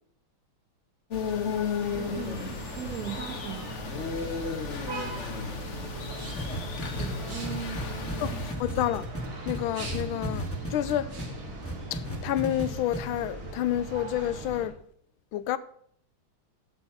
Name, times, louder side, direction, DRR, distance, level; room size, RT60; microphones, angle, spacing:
sound 1, 1.1-8.5, left 5 dB, 40° left, 1.2 m, -34 dB
sound 2, 1.8-14.7, right 3 dB, 75° right, 3.0 m, -40 dB
voice 1, 1.9-3.8 7.0-8.5, right 9 dB, 55° right, 1.4 m, -39 dB
sound 3, 6.4-11.3 11.6-12.7 12.9-13.0, equal, 5° left, 1.6 m, -34 dB
voice 2, 8.2-9.1 9.5-10.5 10.7-11.1 11.9-14.8 15.3-15.6, left 12 dB, 85° left, 1.4 m, -29 dB
8.4 x 8.4 x 5.8 m
omnidirectional pair, 2.3 m